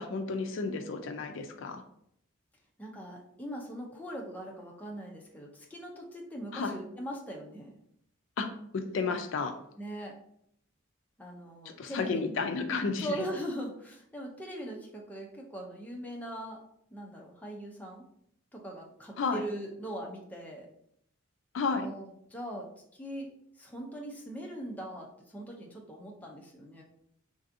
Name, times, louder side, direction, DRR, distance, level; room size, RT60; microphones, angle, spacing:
voice 1, 0.0-1.8 6.5-6.8 8.4-8.5 8.7-9.6 11.8-13.2 19.2-19.4 21.5-21.9, left 4 dB, 70° left, 7 dB, 0.3 m, -32 dB
voice 2, 2.8-7.8 9.8-10.1 11.2-12.3 13.0-16.6 16.9-18.1 18.5-20.7 21.7-23.3 23.6-26.8, right 1 dB, 10° left, -1 dB, 0.4 m, -41 dB
3.3 x 2.6 x 2.5 m, 0.70 s
head